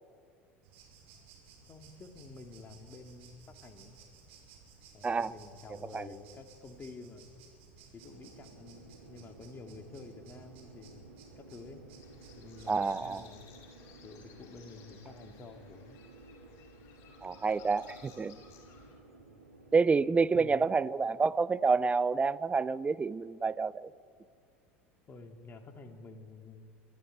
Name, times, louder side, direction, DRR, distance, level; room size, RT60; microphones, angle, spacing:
sound 1, 0.6-13.2, right 5 dB, 65° right, 5.8 m, -57 dB
voice 1, 1.7-4.0 4.9-7.3 7.9-11.0 11.4-11.8 12.4-13.5 14.0-16.0 20.3-20.6 25.1-26.7, left 3 dB, 30° left, 5 dB, 2.8 m, -50 dB
sound 2, 8.0-20.7, right 3 dB, 90° right, 2.5 m, -55 dB
sound 3, 12.0-19.0, left 5 dB, 50° left, 7.4 m, -57 dB
voice 2, 12.7-13.2 17.2-18.4 19.7-23.9, right 4 dB, 20° right, 18 dB, 0.6 m, -28 dB
25.0 x 14.5 x 9.3 m, 2.3 s
figure-of-eight pair, 75°, 7 cm